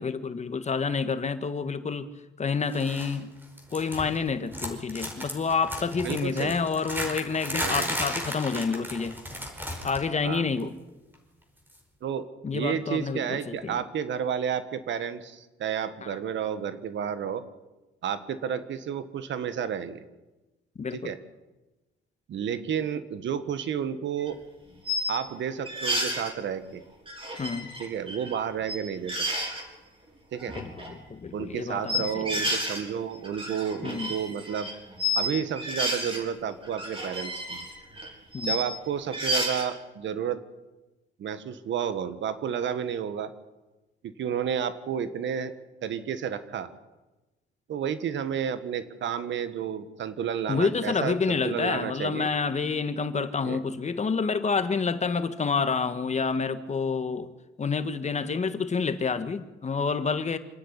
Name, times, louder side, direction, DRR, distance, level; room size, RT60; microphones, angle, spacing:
voice 1, 0.0-2.1 2.4-3.3 3.7-9.1 9.8-10.7 12.4-13.8 16.0-16.2 20.8-21.1 27.4-27.7 30.5-32.4 33.8-34.1 38.3-38.6 50.5-57.3 57.6-60.4, left 5 dB, 35° left, 11 dB, 1.6 m, -28 dB
sound 1, 2.7-3.2 3.4-4.2 4.5-10.1 10.3-10.6 11.7-11.8, equal, 10° right, 5.0 m, -34 dB
voice 2, 6.0-6.6 7.6-7.9 10.2-10.4 12.0-17.4 18.0-20.0 20.9-21.2 22.3-24.4 25.1-26.8 27.8-29.2 30.3-30.6 31.3-34.7 35.1-37.6 38.4-40.4 41.2-43.3 44.0-45.5 45.8-46.7 47.7-52.3 53.4-53.6, right 8 dB, 70° right, 12 dB, 1.6 m, -31 dB
sound 2, 24.2-24.3 24.8-25.1 25.6-26.3 27.1-28.4 28.6-28.8 29.1-29.6 30.3-30.9 31.9-32.8 33.1-35.3 35.6-36.2 36.6-38.7 39.1-39.6, left 1 dB, 25° right, 6.1 m, -31 dB
27.0 x 9.8 x 9.9 m, 1.1 s
cardioid pair, 90°, 20 cm